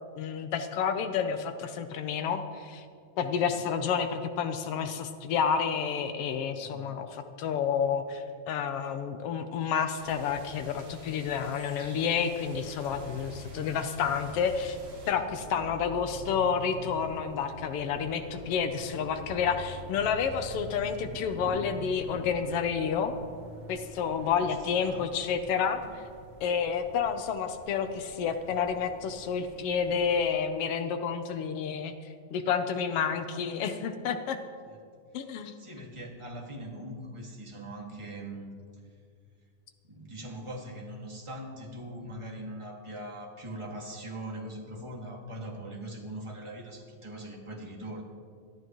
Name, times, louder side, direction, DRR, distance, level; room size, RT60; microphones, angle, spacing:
voice 1, 0.2-2.8 3.2-14.8 15.1-23.1 23.7-26.0 26.4-31.9 32.3-34.4 35.1-35.5, left 7 dB, 90° left, 7 dB, 1.3 m, -30 dB
voice 2, 6.6-6.9 15.0-15.2 15.5-15.7 24.2-25.1 25.8-26.0 34.6-34.8 35.4-38.5 39.9-48.0, right 1 dB, 15° right, -1 dB, 1.3 m, -41 dB
sound 1, 10.0-15.1, right 1 dB, 60° right, 4.0 m, -50 dB
sound 2, 12.5-30.3, right 1 dB, 85° right, 0.5 m, -46 dB
23.0 x 13.5 x 3.1 m, 2.2 s
omnidirectional pair, 3.6 m